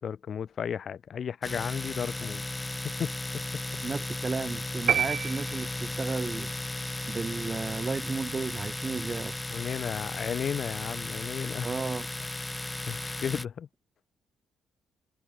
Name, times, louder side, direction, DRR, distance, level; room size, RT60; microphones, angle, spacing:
voice 1, 0.0-2.4 3.0-3.1 9.5-11.7 12.9-13.7, left 7 dB, 55° left, 3.9 m, -33 dB
Domestic sounds home sounds, 1.4-13.5, left 2 dB, 15° left, 3.8 m, -35 dB
voice 2, 3.8-6.5 7.1-9.4 11.6-12.1, right 4 dB, 30° right, 3.3 m, -33 dB
sound 1, 4.9-6.1, right 9 dB, 65° right, 3.5 m, -28 dB
cardioid pair, 90°, 0 cm